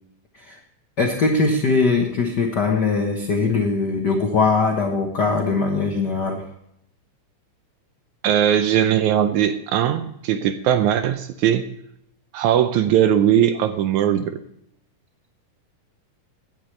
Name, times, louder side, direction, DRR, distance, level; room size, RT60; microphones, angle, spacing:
voice 1, 1.0-6.4, left 4 dB, 70° left, 2 dB, 1.0 m, -21 dB
voice 2, 8.2-11.6 12.3-14.4, right 10 dB, 80° right, 10 dB, 1.8 m, -19 dB
16.5 x 10.0 x 3.2 m, 0.77 s
omnidirectional pair, 3.8 m